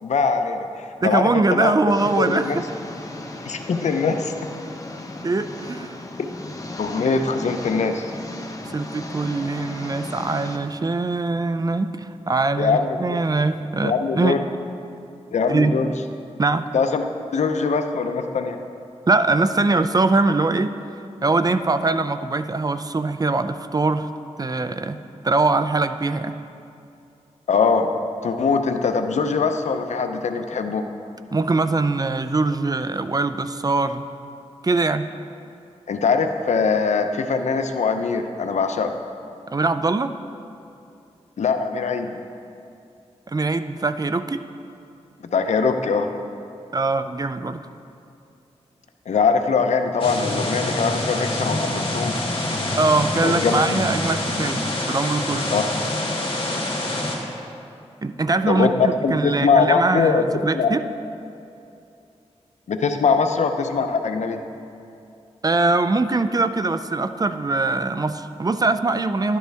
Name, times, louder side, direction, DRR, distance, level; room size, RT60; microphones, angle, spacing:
voice 1, 0.0-1.7 2.2-2.6 3.4-4.3 6.8-8.1 12.6-13.2 13.8-14.4 15.3-15.9 16.7-17.0 17.3-18.6 27.5-27.9 28.2-30.8 35.9-38.9 41.4-42.2 45.2-46.1 49.1-52.1 53.2-53.8 55.5-55.6 58.5-58.7 59.0-60.2 60.5-60.8 62.7-64.4, left 5 dB, 80° left, 7 dB, 0.6 m, -22 dB
voice 2, 1.0-2.7 5.2-6.0 8.7-14.4 15.5-15.7 16.4-16.7 19.1-20.7 21.2-24.1 24.4-25.0 25.2-26.4 31.3-34.0 34.6-35.1 39.5-40.1 43.3-44.4 46.7-47.6 52.8-55.5 58.0-60.8 65.4-69.4, right 3 dB, 35° right, 11 dB, 0.5 m, -22 dB
Engine, 1.9-10.6, left 2 dB, 30° left, 1.0 m, -36 dB
sound 1, 50.0-57.2, left 1 dB, 50° left, 1.8 m, -26 dB
12.0 x 10.5 x 3.5 m, 2.6 s
cardioid pair, 60°, 12 cm